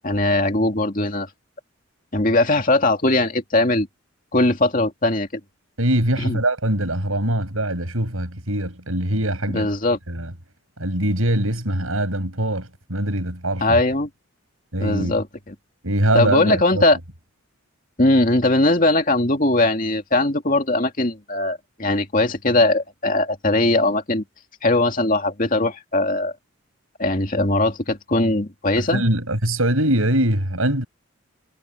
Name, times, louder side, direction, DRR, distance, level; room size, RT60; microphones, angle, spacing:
voice 1, 0.0-1.3 2.1-3.9 4.3-5.3 6.2-6.4 9.5-10.0 13.6-14.1 14.8-15.5 16.1-17.0 18.0-24.2 24.6-26.3 27.0-29.0, left 2 dB, 40° left, 2.4 m, -20 dB
voice 2, 5.8-9.7 10.1-10.3 10.8-13.8 14.7-15.1 15.8-16.8 28.8-30.8, right 1 dB, 80° right, 7.3 m, -22 dB
head